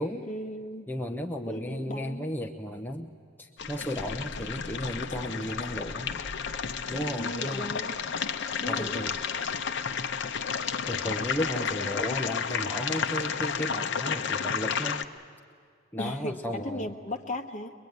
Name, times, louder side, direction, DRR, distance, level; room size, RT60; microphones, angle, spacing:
voice 1, 0.2-0.9 1.5-2.3 7.1-8.0 8.6-9.2 16.0-17.7, left 1 dB, 40° left, 4 dB, 1.4 m, -36 dB
voice 2, 0.9-3.1 3.4-6.1 6.9-7.8 8.7-9.1 10.9-15.0 15.9-16.9, equal, 10° left, 3 dB, 0.8 m, -34 dB
sound 1, 3.6-15.0, left 6 dB, 65° left, 0.8 m, -32 dB
22.5 x 22.0 x 9.4 m, 2.2 s
head